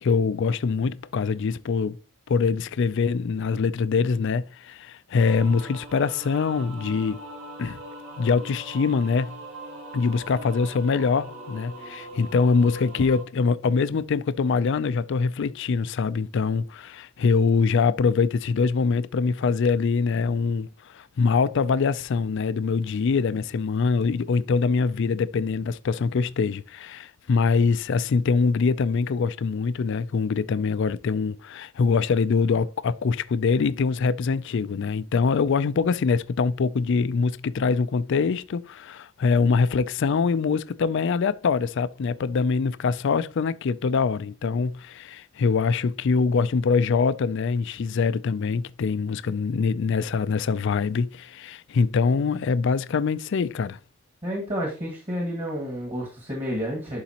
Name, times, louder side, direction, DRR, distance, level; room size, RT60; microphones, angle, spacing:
voice 1, 0.0-2.0 2.3-7.2 7.6-7.8 8.2-9.4 9.9-53.8, left 5 dB, 55° left, 0.4 m, -24 dB
sound 1, 5.2-13.2, right 1 dB, 70° right, 3.0 m, -41 dB
voice 2, 54.2-57.0, equal, 30° right, 1.8 m, -30 dB
11.5 x 4.0 x 2.9 m
head